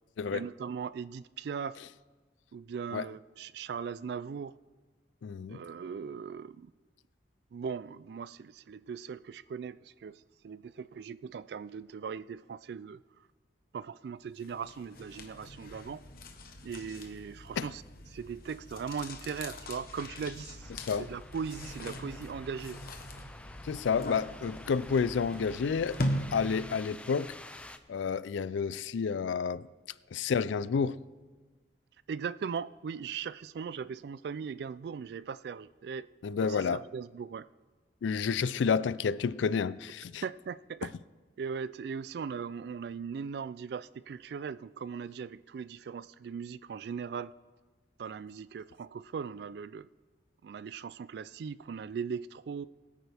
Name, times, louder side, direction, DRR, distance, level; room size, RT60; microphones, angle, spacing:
voice 1, 0.3-1.8 2.5-4.5 5.5-6.7 7.5-13.0 13.7-16.0 16.6-17.8 18.1-20.7 21.0-22.8 32.1-36.1 36.4-37.5 40.2-40.9 41.4-47.3 48.0-49.9 50.4-52.7, right 6 dB, 65° right, 0.3 m, -39 dB
voice 2, 5.2-5.6 17.6-17.7 20.8-21.1 23.6-26.0 26.3-27.4 27.9-29.7 30.1-31.0 36.2-36.8 38.0-40.2, left 6 dB, 90° left, 0.4 m, -30 dB
sound 1, 14.4-26.8, left 1 dB, 50° left, 1.0 m, -41 dB
sound 2, 20.6-27.8, left 1 dB, 5° left, 0.4 m, -49 dB
21.0 x 9.1 x 3.4 m
head